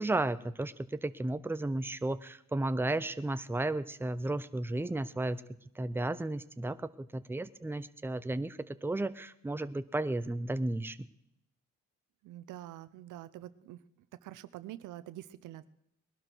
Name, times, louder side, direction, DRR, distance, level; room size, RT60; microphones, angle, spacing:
voice 1, 0.0-5.4 5.8-11.1, right 2 dB, 5° right, 12 dB, 0.7 m, -33 dB
voice 2, 12.2-13.8 14.2-15.7, right 14 dB, 90° right, 15 dB, 0.8 m, -46 dB
20.5 x 12.0 x 4.6 m, 0.78 s
cardioid pair, 90°, 30 cm